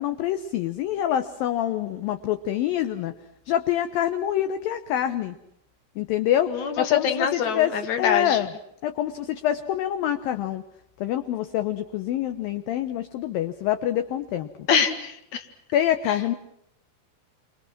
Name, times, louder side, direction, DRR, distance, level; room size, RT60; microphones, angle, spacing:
voice 1, 0.0-3.1 3.5-5.4 6.0-6.5 6.8-8.5 8.8-10.6 11.0-14.7 15.7-16.4, left 11 dB, 65° left, 9 dB, 2.6 m, -26 dB
voice 2, 6.5-8.4 14.7-15.4, left 7 dB, 50° left, 8 dB, 3.1 m, -24 dB
29.5 x 25.5 x 6.1 m, 0.75 s
omnidirectional pair, 5.0 m